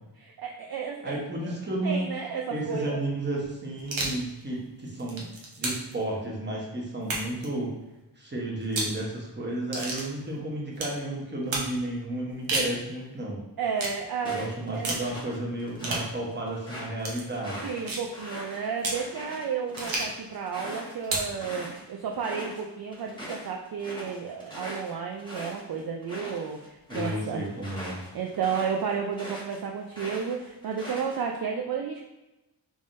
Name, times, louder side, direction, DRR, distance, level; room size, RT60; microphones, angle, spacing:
voice 1, 0.2-1.2 1.4-1.6 1.8-3.0 13.6-15.1 17.6-27.4 28.1-32.0, right 6 dB, 55° right, 1 dB, 0.5 m, -32 dB
voice 2, 1.0-2.1 2.5-5.3 5.6-7.7 8.2-13.4 14.2-17.7 26.9-28.0, right 1 dB, 25° right, -3 dB, 1.1 m, -32 dB
sound 1, 3.8-4.2 4.9-5.9 7.0-7.5 8.6-9.0 9.7-10.1 10.8-11.0 11.5-11.7 12.3-12.8 13.8-14.0 14.8-15.1 15.8-16.1 17.0-17.2 17.9-18.1 18.8-19.0 19.8-20.2 21.0-21.3, right 2 dB, 75° right, 0.9 m, -31 dB
sound 2, 14.2-16.1 16.5-21.8 22.1-22.6 22.9-29.6 29.9-31.4, equal, 10° left, 1.2 m, -41 dB
3.5 x 3.2 x 2.6 m, 0.97 s
wide cardioid pair, 75°, 45 cm